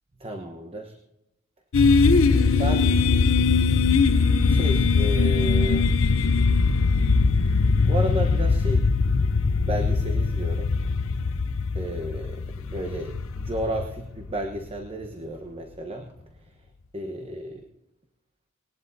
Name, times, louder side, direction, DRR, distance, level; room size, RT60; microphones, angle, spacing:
voice 1, 0.2-0.9 2.0-3.0 4.4-5.9 7.9-8.9 9.7-10.7 11.7-16.1 16.9-17.6, equal, 30° right, 3 dB, 1.0 m, -32 dB
sound 1, 1.7-14.6, left 4 dB, 80° left, 0.6 m, -21 dB
20.0 x 19.0 x 2.7 m, 0.93 s
head